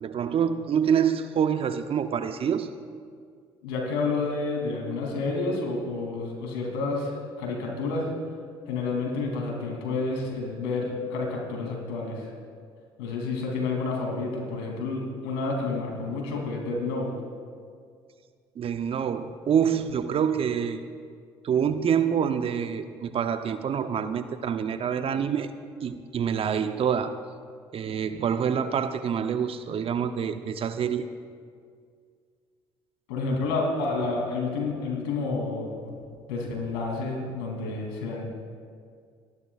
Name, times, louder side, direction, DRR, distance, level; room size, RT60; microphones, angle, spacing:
voice 1, 0.0-2.7 18.6-20.8 21.4-25.5 25.8-27.1 27.7-31.1, right 8 dB, 50° right, 10 dB, 0.7 m, -26 dB
voice 2, 3.6-8.1 8.7-12.3 13.0-17.1 33.1-36.0 36.3-38.3, left 3 dB, 85° left, 0 dB, 3.0 m, -29 dB
27.5 x 11.0 x 2.4 m, 2.1 s
hypercardioid pair, 65°, 13 cm